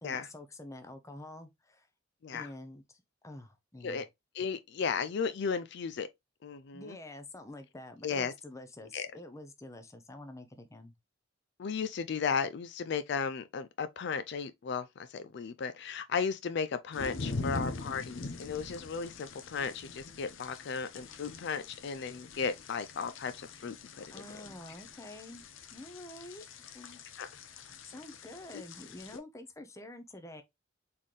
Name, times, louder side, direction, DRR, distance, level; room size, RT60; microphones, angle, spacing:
voice 1, 0.0-1.9 2.3-4.0 6.7-10.9 24.1-25.4 25.7-26.4 26.7-27.0 27.8-30.4, left 1 dB, 15° left, 0.7 m, -48 dB
voice 2, 4.3-6.1 6.4-7.0 8.0-8.3 8.9-9.1 11.6-24.2 27.2-27.3 28.5-28.6, left 5 dB, 60° left, 0.4 m, -35 dB
sound 1, 16.9-29.2, left 3 dB, 85° left, 0.8 m, -43 dB
4.2 x 3.7 x 3.0 m
head